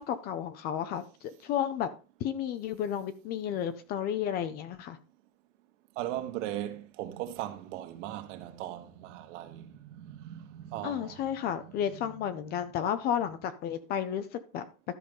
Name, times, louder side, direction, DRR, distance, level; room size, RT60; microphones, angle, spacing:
voice 1, 0.0-1.9 2.2-5.0 10.8-14.6, left 9 dB, 25° left, 0.5 m, -32 dB
voice 2, 6.0-11.2 12.4-12.5, right 13 dB, 65° right, 1.7 m, -38 dB
12.5 x 5.1 x 5.3 m
supercardioid pair, 175°, 40 cm